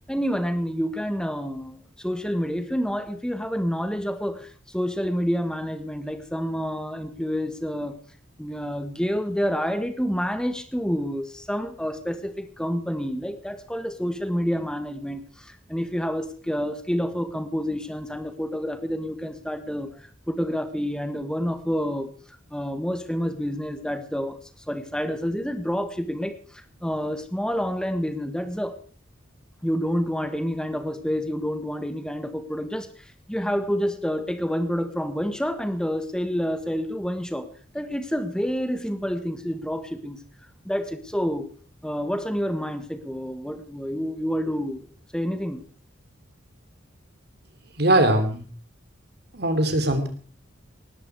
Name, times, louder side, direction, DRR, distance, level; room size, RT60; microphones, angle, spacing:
voice 1, 0.1-8.0 8.4-22.1 22.5-24.4 24.7-28.8 29.6-32.9 33.3-37.5 37.7-40.2 40.6-41.5 41.8-44.9 45.1-45.6, equal, 5° left, 9 dB, 1.5 m, -28 dB
voice 2, 47.8-48.4 49.3-50.1, right 1 dB, 55° right, 8 dB, 3.2 m, -20 dB
19.0 x 14.0 x 4.8 m, 0.41 s
head